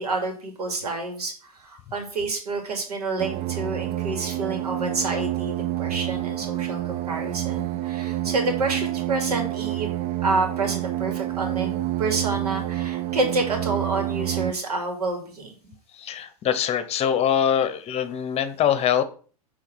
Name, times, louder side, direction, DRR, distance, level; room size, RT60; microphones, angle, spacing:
voice 1, 0.0-9.9 10.2-15.7, right 3 dB, 85° right, 4 dB, 2.6 m, -28 dB
sound 1, 3.2-14.5, right 15 dB, 35° right, 0.5 m, -28 dB
voice 2, 15.9-19.0, left 9 dB, 35° left, 12 dB, 1.0 m, -23 dB
8.3 x 3.9 x 6.2 m, 0.41 s
hypercardioid pair, 105°, 19 cm